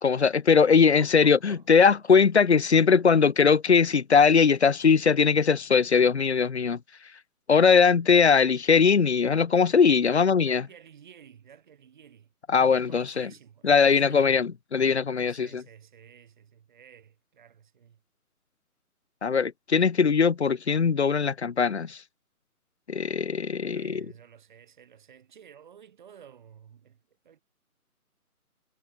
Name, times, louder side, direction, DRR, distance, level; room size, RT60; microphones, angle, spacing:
voice 1, 0.0-6.8 7.5-10.6 12.5-13.3 13.6-15.6 19.2-22.0 22.9-24.1, left 6 dB, 45° left, 0.8 m, -21 dB
voice 2, 0.8-1.9 2.9-3.0 10.0-12.3 12.7-14.4 15.2-18.0 23.7-27.4, right 8 dB, 30° right, 6.2 m, -52 dB
figure-of-eight pair, 165°, 45 cm